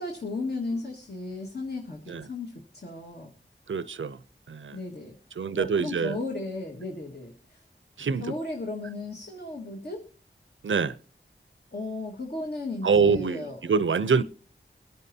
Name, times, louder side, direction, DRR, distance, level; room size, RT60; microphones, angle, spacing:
voice 1, 0.0-3.3 4.7-5.2 5.6-7.6 8.2-10.1 11.7-13.6, left 2 dB, 55° left, 1.8 m, -35 dB
voice 2, 3.7-4.2 4.5-4.8 5.4-6.2 8.0-8.4 10.6-11.0 12.8-14.2, right 5 dB, 75° right, 0.6 m, -25 dB
23.5 x 10.5 x 2.8 m
wide cardioid pair, 60°, 20 cm